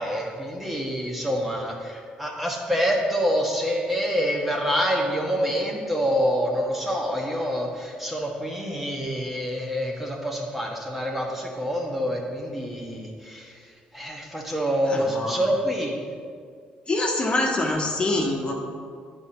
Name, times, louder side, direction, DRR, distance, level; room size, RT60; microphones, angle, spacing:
voice 1, 0.0-13.6 13.9-16.0, equal, 5° right, -2 dB, 1.3 m, -26 dB
voice 2, 14.8-15.4 16.9-18.5, left 2 dB, 35° left, -1 dB, 1.4 m, -25 dB
9.0 x 4.4 x 5.0 m, 2.1 s
cardioid pair, 80°, 3 cm